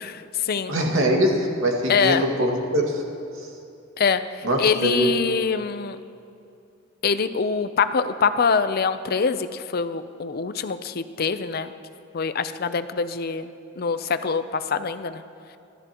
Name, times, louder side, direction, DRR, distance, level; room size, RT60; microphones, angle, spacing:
voice 1, 0.0-0.8 1.9-2.2 4.0-6.0 7.0-11.7 12.1-13.5 13.8-15.2, left 5 dB, 50° left, 11 dB, 0.5 m, -24 dB
voice 2, 0.7-3.0 4.4-5.1, right 1 dB, 75° right, 0 dB, 2.1 m, -22 dB
30.0 x 13.0 x 3.0 m, 2.5 s
head